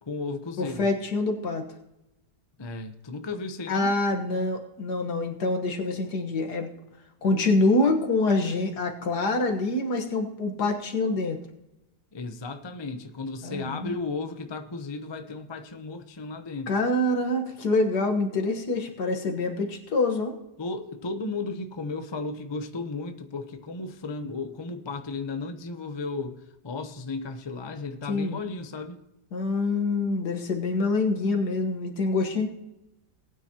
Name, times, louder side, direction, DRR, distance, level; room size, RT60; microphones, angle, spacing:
voice 1, 0.0-0.9 2.6-3.9 12.1-16.7 20.6-29.0, left 3 dB, 30° left, 7 dB, 0.4 m, -34 dB
voice 2, 0.6-1.7 3.7-6.7 7.2-11.4 13.4-14.0 16.7-20.3 28.1-28.4 29.3-32.5, left 2 dB, 70° left, 3 dB, 2.0 m, -26 dB
19.0 x 9.3 x 2.9 m, 0.91 s
omnidirectional pair, 1.8 m